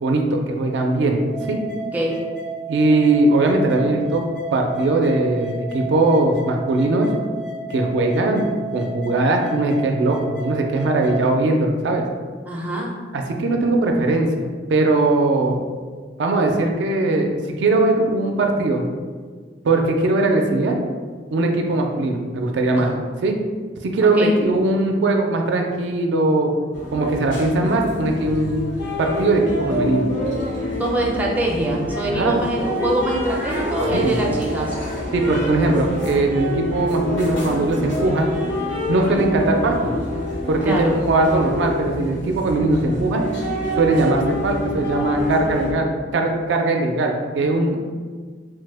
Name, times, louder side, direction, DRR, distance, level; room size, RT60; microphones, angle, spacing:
voice 1, 0.0-1.6 2.7-4.2 4.5-7.1 7.7-8.5 8.7-12.1 13.1-15.6 16.2-18.8 19.6-20.8 21.3-22.9 23.2-23.4 23.8-26.5 26.9-28.7 29.0-30.1 32.1-32.4 33.9-34.2 35.1-38.3 38.9-39.9 40.5-43.2 43.7-47.8, right 2 dB, 80° right, 3 dB, 0.4 m, -20 dB
sound 1, 1.3-11.3, right 3 dB, 60° left, 0.5 m, -33 dB
voice 2, 12.5-12.9 22.8-22.9 24.0-24.4 30.8-34.8 39.0-39.3 40.6-41.0, right 1 dB, 10° right, -3 dB, 0.4 m, -24 dB
sound 2, 26.7-45.7, left 1 dB, 90° left, 0.9 m, -27 dB
3.1 x 2.0 x 3.3 m, 1.6 s
head